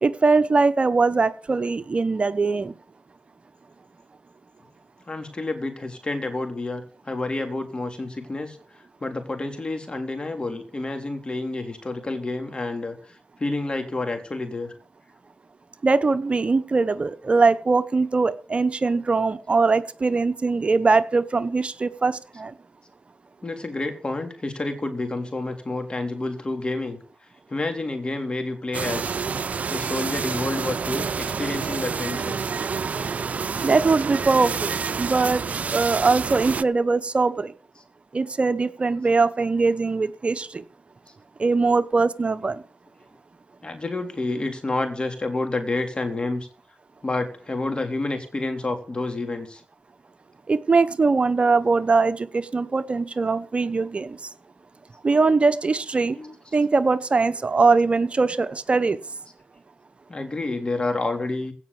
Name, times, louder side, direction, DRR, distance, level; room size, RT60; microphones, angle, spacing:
voice 1, 0.0-2.7 15.8-22.5 33.6-35.4 35.7-37.5 38.1-40.6 41.4-42.6 50.5-54.2 55.0-56.2 56.5-59.0, right 4 dB, 50° right, 12 dB, 1.0 m, -21 dB
voice 2, 5.1-8.6 9.0-14.7 18.5-18.6 23.4-27.0 27.5-29.2 29.7-32.5 32.9-33.2 37.8-37.9 42.5-42.6 43.6-46.5 47.0-49.6 56.2-56.6 60.1-61.5, left 2 dB, 40° left, 6 dB, 3.6 m, -29 dB
sound 1, 28.7-36.6, right 5 dB, 65° right, 0.5 m, -28 dB
17.0 x 5.8 x 7.1 m, 0.41 s
cardioid pair, 55°, 3 cm